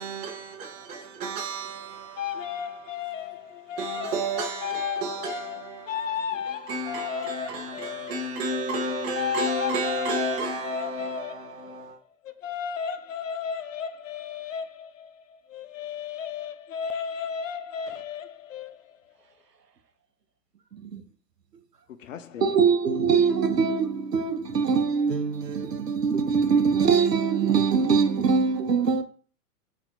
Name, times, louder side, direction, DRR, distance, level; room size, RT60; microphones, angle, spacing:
voice 1, 0.0-2.3 3.8-5.8 6.7-11.9, right 2 dB, 20° right, 0.7 m, -32 dB
voice 2, 2.2-11.7 12.2-19.0 22.0-22.6, left 7 dB, 55° left, 0.6 m, -34 dB
voice 3, 20.7-21.0 22.4-29.0, right 5 dB, 80° right, 0.8 m, -23 dB
4.2 x 2.7 x 3.8 m
figure-of-eight pair, 110°, 48 cm